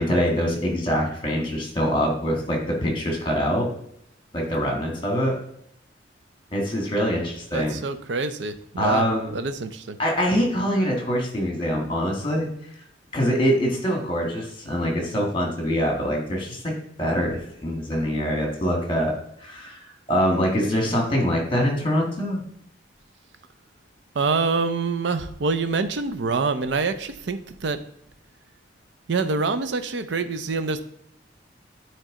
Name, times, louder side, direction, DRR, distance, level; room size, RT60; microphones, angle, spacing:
voice 1, 0.0-3.7 4.3-5.3 6.5-7.8 8.8-9.3 10.0-12.5 13.1-16.7 17.0-19.1 19.4-19.8 20.1-22.4, equal, 25° left, 1 dB, 1.6 m, -24 dB
voice 2, 7.5-10.0 24.1-27.8 29.1-30.8, right 4 dB, 75° right, 10 dB, 0.5 m, -26 dB
9.0 x 3.3 x 3.7 m, 0.71 s
head